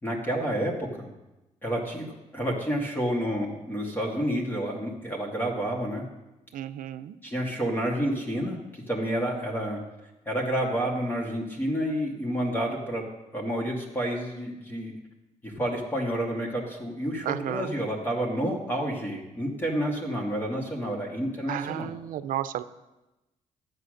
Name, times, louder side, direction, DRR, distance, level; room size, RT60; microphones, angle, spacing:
voice 1, 0.0-1.1 1.6-2.1 2.3-6.0 7.2-9.8 10.3-13.0 13.3-14.9 15.4-21.9, equal, 15° left, -1 dB, 2.2 m, -29 dB
voice 2, 6.5-7.1 17.3-17.7 21.5-22.6, right 11 dB, 85° right, 13 dB, 0.6 m, -32 dB
12.5 x 8.3 x 6.5 m, 1.0 s
cardioid pair, 125°, 14 cm